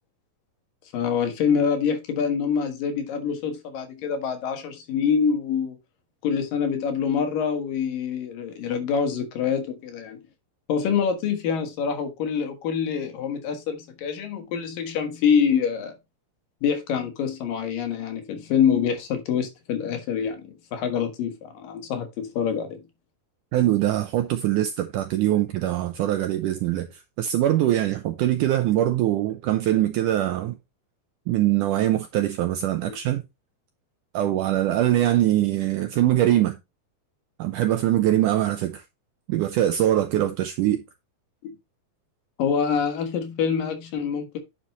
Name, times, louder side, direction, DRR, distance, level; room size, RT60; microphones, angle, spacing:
voice 1, 0.9-5.8 6.2-10.2 10.7-15.9 16.6-22.8 32.9-33.0 41.4-41.5 42.4-44.4, left 7 dB, 70° left, 3.0 m, -25 dB
voice 2, 23.5-30.6 31.3-33.2 34.1-36.6 37.4-38.8 39.3-40.8, right 13 dB, 80° right, 1.9 m, -23 dB
10.0 x 5.8 x 3.0 m
omnidirectional pair, 4.4 m